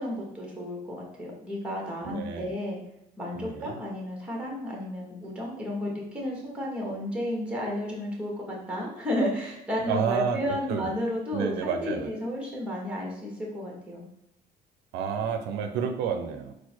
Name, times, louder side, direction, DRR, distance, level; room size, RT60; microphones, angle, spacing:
voice 1, 0.0-2.8 3.2-14.0, left 1 dB, 5° right, -2 dB, 1.3 m, -32 dB
voice 2, 2.0-2.5 3.4-3.8 9.8-10.9 11.3-12.1 14.9-16.5, right 6 dB, 90° right, 6 dB, 0.5 m, -30 dB
4.3 x 2.2 x 4.4 m, 0.82 s
cardioid pair, 110°, 17 cm